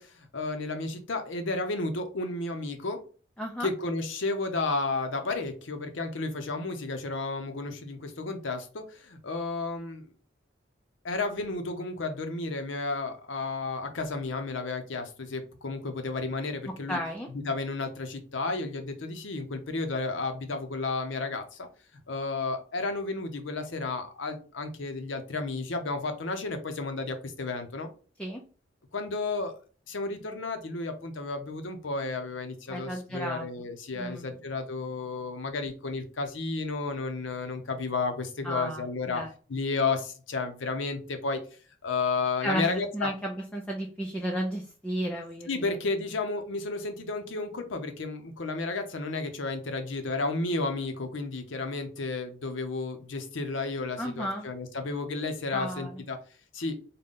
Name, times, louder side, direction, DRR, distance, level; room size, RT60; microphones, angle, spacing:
voice 1, 0.0-3.0 3.6-10.1 11.0-17.0 17.3-21.7 22.1-27.9 28.9-29.5 29.9-39.2 39.5-41.4 41.8-43.1 45.5-56.2 56.5-56.8, left 3 dB, 70° left, 7 dB, 0.7 m, -32 dB
voice 2, 3.4-3.7 16.9-17.3 28.2-28.4 32.7-33.7 33.9-34.4 38.4-39.3 42.4-45.8 54.0-54.5 55.5-56.0, equal, 5° left, 0 dB, 0.4 m, -33 dB
3.8 x 2.2 x 3.6 m, 0.39 s
head